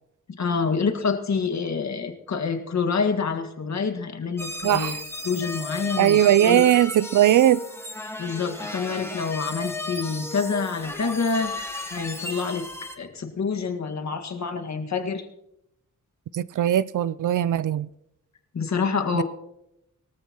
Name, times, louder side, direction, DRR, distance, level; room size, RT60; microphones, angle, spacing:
voice 1, 0.4-4.9 5.3-6.6 8.2-11.6 11.9-12.7 13.0-15.2 18.5-19.2, left 5 dB, 60° left, 1.8 m, -27 dB
sound 1, 4.4-13.0, left 1 dB, 10° left, 1.6 m, -35 dB
voice 2, 4.6-5.0 6.0-7.6 16.3-17.9 19.1-19.2, right 11 dB, 70° right, 0.4 m, -19 dB
22.5 x 14.0 x 3.0 m
wide cardioid pair, 100°, 32 cm